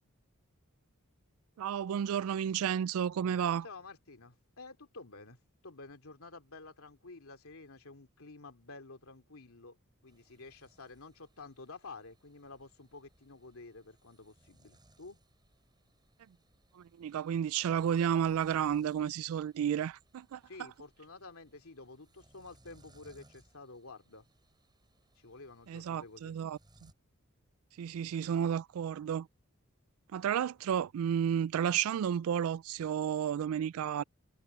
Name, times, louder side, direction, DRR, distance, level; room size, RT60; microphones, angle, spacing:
voice 1, 1.6-3.7 16.7-20.4 25.7-26.9 27.8-29.3 30.1-34.0, right 8 dB, 75° right, 0.3 m, -32 dB
voice 2, 3.6-5.4 5.6-9.8 10.0-15.2 20.4-24.3 25.2-26.3, left 3 dB, 80° left, 2.7 m, -51 dB
sound 1, 10.1-26.9, right 1 dB, 20° right, 5.6 m, -67 dB
head